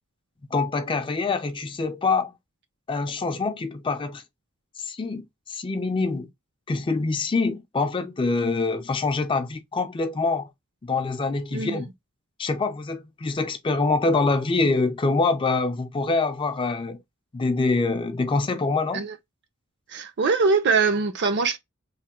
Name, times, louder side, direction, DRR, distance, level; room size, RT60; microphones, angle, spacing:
voice 1, 0.5-2.3 2.9-4.2 4.8-6.3 6.7-10.5 10.8-11.9 12.4-17.0 17.3-19.1, left 3 dB, 25° left, 0.4 m, -25 dB
voice 2, 11.5-11.8 18.9-19.1 19.9-21.6, right 4 dB, 55° right, 0.5 m, -22 dB
3.2 x 2.1 x 2.9 m
head